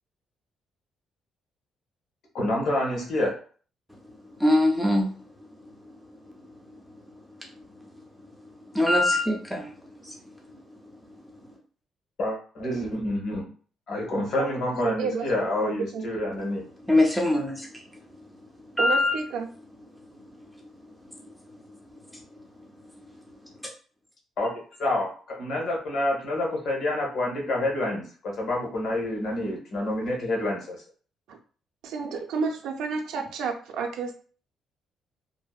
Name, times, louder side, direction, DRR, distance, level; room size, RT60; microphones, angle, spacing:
voice 1, 2.3-3.4 12.2-13.5 13.9-16.6 24.4-24.5 24.8-30.8, left 1 dB, 50° left, -1 dB, 0.9 m, -28 dB
voice 2, 4.4-5.1 8.7-9.7 10.1-10.2 10.4-10.6 16.9-17.8 18.7-19.1 21.1-21.2, left 1 dB, ahead, 0 dB, 0.3 m, -22 dB
voice 3, 14.2-14.5 14.8-16.1 18.8-19.5 31.3-31.4 31.8-34.1, right 5 dB, 75° right, 3 dB, 0.4 m, -31 dB
2.6 x 2.1 x 2.3 m, 0.41 s
cardioid pair, 180°, 0 cm